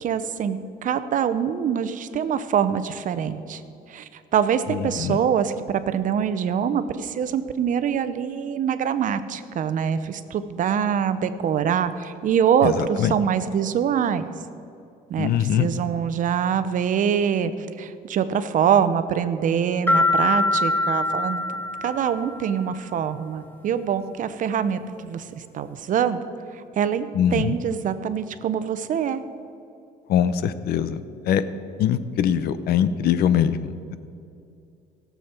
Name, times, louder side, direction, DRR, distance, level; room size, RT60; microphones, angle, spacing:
voice 1, 0.0-3.6 3.9-14.3 15.1-17.5 17.8-25.2 25.5-26.2 26.8-29.2, right 8 dB, 50° right, 11 dB, 0.7 m, -24 dB
voice 2, 15.2-15.7 27.2-27.5 30.1-31.0 31.3-31.4 31.8-34.0, left 9 dB, 70° left, 14 dB, 0.6 m, -22 dB
sound 1, 19.9-22.5, left 2 dB, 10° left, 1.2 m, -23 dB
17.5 x 7.1 x 4.5 m, 2.6 s
cardioid pair, 110°, 17 cm